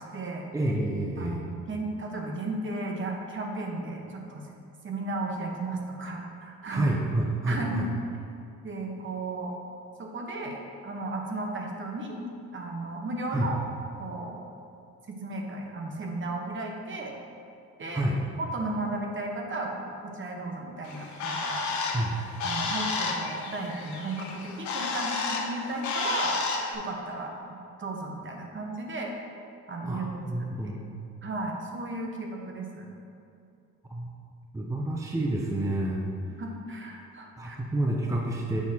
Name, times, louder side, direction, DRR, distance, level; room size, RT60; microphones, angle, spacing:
voice 1, 0.0-0.5 1.2-1.4 1.7-4.5 4.8-6.9 7.5-7.8 8.6-9.5 10.0-13.6 14.0-14.4 15.1-17.1 17.8-18.1 18.4-21.7 22.4-26.4 26.7-29.1 29.7-30.8 31.2-32.9 36.4-37.6, right 2 dB, 40° right, 1 dB, 1.0 m, -35 dB
voice 2, 0.5-1.4 6.7-7.9 13.3-13.5 17.9-18.2 21.9-22.1 29.8-30.9 33.9-34.1 34.5-36.0 37.4-38.6, right 1 dB, 10° right, -1 dB, 0.6 m, -29 dB
Bird, 20.8-26.7, left 4 dB, 70° left, 0.9 m, -31 dB
7.4 x 5.9 x 2.8 m, 2.6 s
cardioid pair, 90°, 30 cm